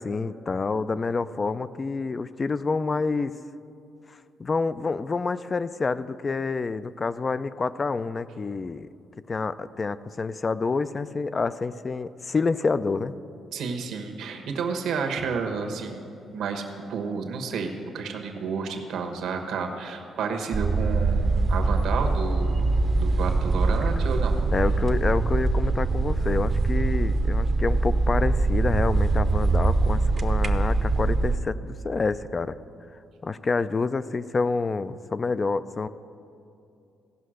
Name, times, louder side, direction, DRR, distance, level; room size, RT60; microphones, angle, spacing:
voice 1, 0.0-3.3 4.1-8.9 9.3-13.1 24.5-32.6 33.2-35.9, left 4 dB, 35° left, 15 dB, 0.4 m, -28 dB
voice 2, 13.5-16.0 16.3-22.6 23.0-24.4, right 5 dB, 75° right, 4 dB, 1.2 m, -31 dB
sound 1, 20.5-31.4, right 3 dB, 40° right, 0.7 m, -23 dB
16.5 x 5.6 x 6.4 m, 2.6 s
cardioid pair, 90°, 0 cm